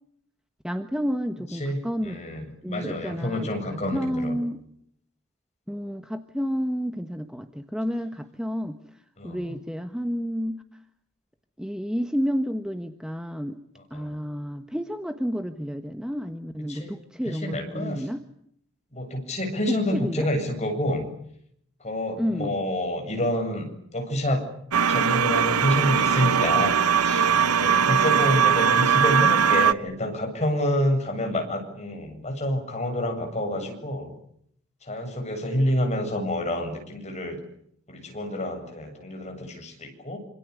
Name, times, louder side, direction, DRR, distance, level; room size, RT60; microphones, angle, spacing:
voice 1, 0.6-2.2 2.6-4.6 5.7-10.6 11.6-13.6 13.9-18.2 19.7-20.3 22.2-22.5 27.9-28.4, equal, 5° right, 7 dB, 1.3 m, -30 dB
voice 2, 1.6-4.4 9.2-9.5 13.9-14.2 16.7-16.9 17.3-18.0 18.9-21.1 21.8-24.5 24.9-34.1 34.8-37.4 37.9-40.2, left 1 dB, 30° left, 4 dB, 7.8 m, -28 dB
sound 1, 24.7-29.7, right 7 dB, 85° right, 1.1 m, -20 dB
26.5 x 26.5 x 8.4 m, 0.71 s
head